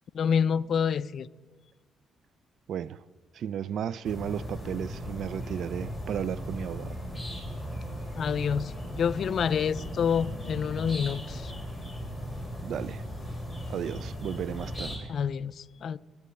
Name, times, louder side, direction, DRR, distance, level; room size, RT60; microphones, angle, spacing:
voice 1, 0.1-1.3 8.2-11.5 15.1-16.0, left 7 dB, 60° left, 0.4 m, -28 dB
voice 2, 2.7-3.0 3.3-7.0 12.6-13.0 13.7-15.1, right 9 dB, 70° right, 0.4 m, -34 dB
sound 1, 4.0-15.0, equal, 5° right, 4.0 m, -37 dB
11.5 x 8.7 x 8.3 m
cardioid pair, 90°, 0 cm